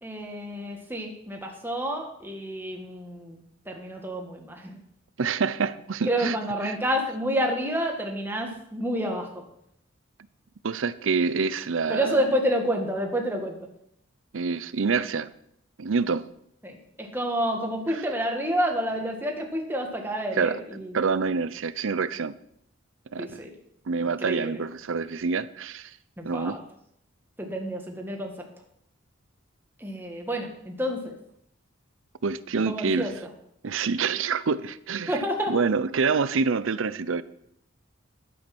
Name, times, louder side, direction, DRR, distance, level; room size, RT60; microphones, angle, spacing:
voice 1, 0.0-4.8 6.1-9.3 11.9-13.7 16.6-20.9 23.2-23.5 24.0-24.6 26.2-26.6 27.4-28.3 29.8-31.2 32.7-33.1 35.1-35.6, equal, 10° right, 1 dB, 1.8 m, -29 dB
voice 2, 5.2-6.4 6.6-6.8 10.6-12.2 14.3-15.3 15.8-16.3 20.3-20.6 20.9-22.3 23.1-23.4 23.9-25.9 26.2-26.6 32.2-33.1 33.6-35.2 35.5-37.2, right 5 dB, 70° right, 16 dB, 0.6 m, -26 dB
12.0 x 8.5 x 6.1 m, 0.73 s
head